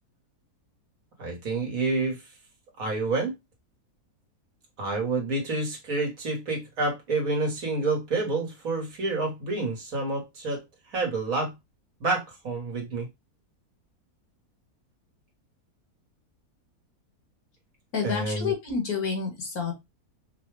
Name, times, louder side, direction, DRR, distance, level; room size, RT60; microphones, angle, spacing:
voice 1, 1.2-2.2 2.8-3.3 4.8-10.6 10.9-11.5 12.0-13.1 18.0-18.5, right 3 dB, 60° right, 1.7 m, -28 dB
voice 2, 17.9-19.7, left 5 dB, 70° left, 1.9 m, -29 dB
4.9 x 2.3 x 3.2 m
omnidirectional pair, 1.7 m